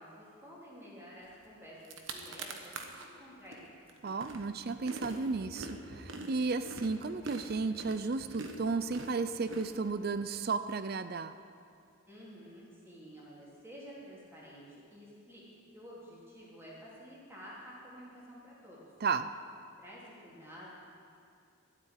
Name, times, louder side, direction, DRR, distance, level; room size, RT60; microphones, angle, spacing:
voice 1, 0.0-3.7 12.1-15.5 15.7-18.8 19.8-20.7, equal, 10° right, -6 dB, 3.3 m, -51 dB
sound 1, 1.4-1.5 1.8-3.1 3.5-10.3, right 2 dB, 65° right, 1.2 m, -45 dB
voice 2, 4.0-11.3 19.0-19.3, right 4 dB, 45° right, 11 dB, 0.4 m, -34 dB
13.0 x 8.3 x 9.2 m, 2.5 s
head